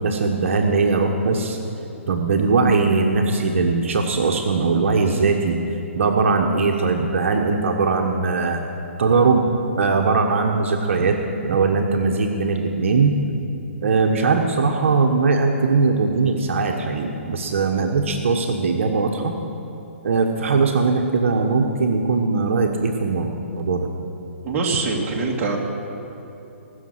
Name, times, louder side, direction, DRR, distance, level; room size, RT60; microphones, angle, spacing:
voice 1, 0.0-1.6 2.1-5.6 6.0-8.6 9.0-9.5 9.8-11.2 11.4-13.2 13.8-19.3 20.0-23.3 23.5-23.9, right 4 dB, 65° right, 3 dB, 1.2 m, -20 dB
voice 2, 24.4-25.6, right 3 dB, 25° right, -2 dB, 2.1 m, -23 dB
19.5 x 6.7 x 7.9 m, 3.0 s
hypercardioid pair, 140°, 7 cm